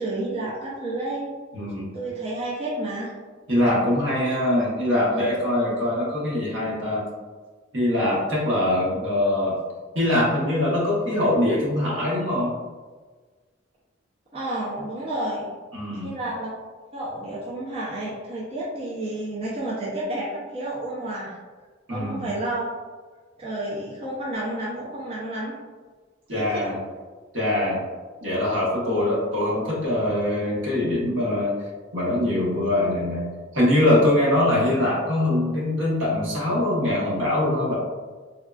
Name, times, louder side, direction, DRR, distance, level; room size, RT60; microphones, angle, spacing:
voice 1, 0.0-1.3 1.9-3.1 14.3-15.5 15.9-16.5 16.9-21.4 21.9-22.7 23.4-25.5 26.3-26.7 28.8-29.2, right 1 dB, 30° right, -8 dB, 0.5 m, -30 dB
voice 2, 1.5-1.9 3.5-7.0 7.7-9.6 9.9-12.5 15.7-16.1 21.9-22.3 26.3-26.8 27.3-27.8 28.2-31.5 31.9-33.2 33.5-37.8, left 1 dB, 65° right, -6 dB, 1.0 m, -23 dB
3.5 x 2.3 x 2.3 m, 1.4 s
head